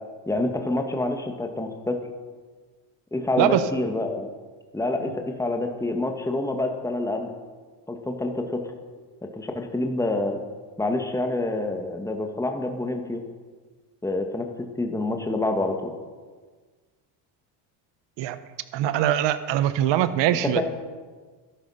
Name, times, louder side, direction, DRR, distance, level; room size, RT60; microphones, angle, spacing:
voice 1, 0.3-2.0 3.1-4.3 4.7-7.3 7.9-8.6 9.2-10.4 10.8-13.2 14.0-15.9 20.4-20.6, left 2 dB, 5° left, 4 dB, 1.8 m, -27 dB
voice 2, 18.7-20.6, right 12 dB, 65° right, 13 dB, 1.1 m, -22 dB
13.0 x 11.5 x 5.7 m, 1.4 s
supercardioid pair, 90°, 47 cm